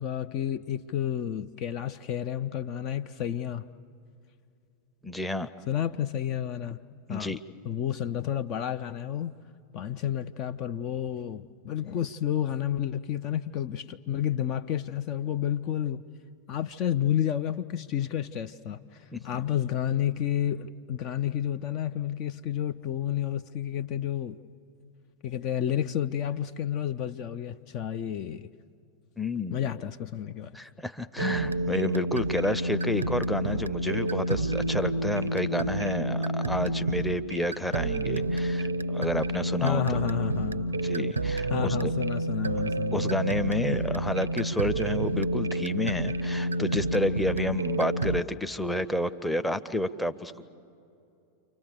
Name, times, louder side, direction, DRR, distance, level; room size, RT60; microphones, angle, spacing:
voice 1, 0.0-3.7 5.7-6.8 7.1-7.4 7.6-9.3 9.7-16.0 16.5-24.4 25.2-28.5 29.5-30.5 39.6-40.8 41.5-43.1, left 10 dB, 40° left, 0.5 m, -30 dB
voice 2, 5.0-5.5 7.1-7.4 19.1-19.4 29.2-29.6 30.5-39.8 40.8-41.9 42.9-50.5, left 1 dB, 5° left, 0.8 m, -30 dB
sound 1, 31.2-48.2, right 1 dB, 80° right, 0.5 m, -29 dB
29.5 x 25.0 x 6.9 m
figure-of-eight pair, 90°, 0 cm